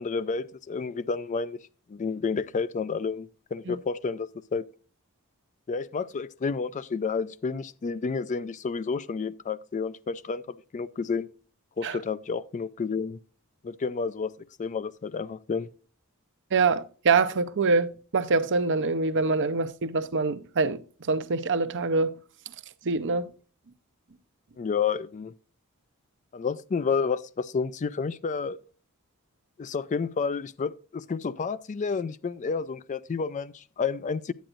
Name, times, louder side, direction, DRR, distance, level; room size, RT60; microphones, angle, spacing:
voice 1, 0.0-1.6 1.9-4.7 5.7-11.3 11.8-13.2 13.6-14.3 14.6-15.7 24.6-25.3 26.3-28.6 29.6-34.3, left 5 dB, 35° left, 0.4 m, -30 dB
voice 2, 16.5-20.8 21.1-22.1 22.9-23.3, right 4 dB, 55° right, 0.6 m, -25 dB
10.5 x 8.8 x 2.5 m
head